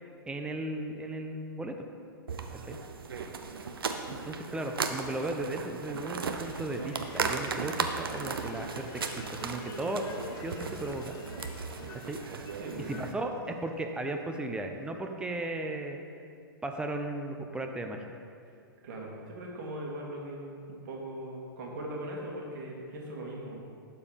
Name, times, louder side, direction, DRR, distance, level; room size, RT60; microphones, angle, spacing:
voice 1, 0.3-1.8 2.7-2.8 4.1-9.0 9.3-10.0 10.4-11.2 12.0-12.2 12.9-16.0 16.6-18.0, right 2 dB, 10° right, 4 dB, 0.7 m, -36 dB
sound 1, 2.3-13.1, right 5 dB, 75° right, 0.7 m, -36 dB
sound 2, 6.2-14.2, left 5 dB, 30° left, 0.7 m, -49 dB
voice 2, 12.6-12.9 18.8-23.6, right 1 dB, 55° right, -2 dB, 2.1 m, -40 dB
11.5 x 4.7 x 5.2 m, 2.5 s
hypercardioid pair, 115°, 12 cm